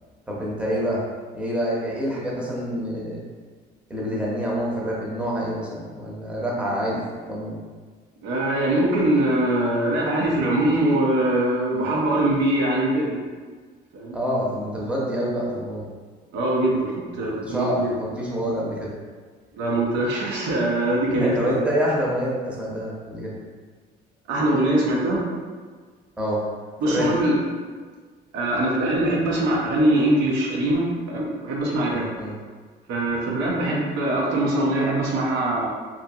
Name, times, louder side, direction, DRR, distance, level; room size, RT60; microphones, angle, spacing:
voice 1, 0.3-1.0 1.3-3.2 3.9-7.6 11.7-11.9 14.1-15.8 17.2-18.9 21.1-23.4 26.2-26.4 26.9-27.1 31.9-32.3, equal, 5° right, -5 dB, 0.6 m, -27 dB
voice 2, 8.2-13.2 13.9-14.2 16.3-17.9 19.5-21.6 24.3-25.2 26.8-27.4 28.3-32.1 32.9-35.7, right 1 dB, 90° right, -3 dB, 0.6 m, -22 dB
2.6 x 2.6 x 2.3 m, 1.5 s
cardioid pair, 110°, 17 cm